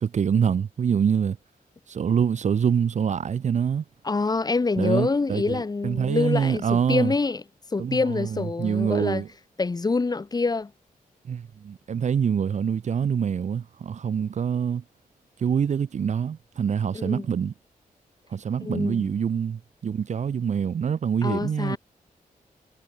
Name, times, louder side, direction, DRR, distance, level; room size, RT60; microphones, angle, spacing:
voice 1, 0.0-1.4 1.9-3.8 4.8-7.1 7.8-9.3 11.3-14.8 15.4-17.5 18.3-21.8, right 7 dB, 55° right, 0.7 m, -25 dB
voice 2, 4.0-7.4 7.7-9.2 9.6-10.7 16.9-17.2 18.6-19.1 21.2-21.8, left 3 dB, 25° left, 1.6 m, -26 dB
wide cardioid pair, 155°, 15 cm